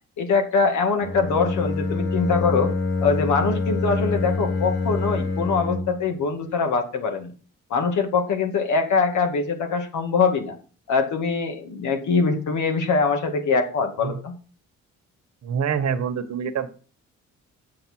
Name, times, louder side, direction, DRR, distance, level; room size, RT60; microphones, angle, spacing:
voice 1, 0.2-2.7 3.0-7.3 7.7-10.6 10.9-14.3, left 4 dB, 75° left, 5 dB, 2.2 m, -23 dB
Bowed string instrument, 1.0-6.1, left 3 dB, 40° left, 2.2 m, -26 dB
voice 2, 15.4-16.7, right 7 dB, 60° right, 9 dB, 1.4 m, -26 dB
7.8 x 7.5 x 4.6 m, 0.39 s
cardioid pair, 90°, 30 cm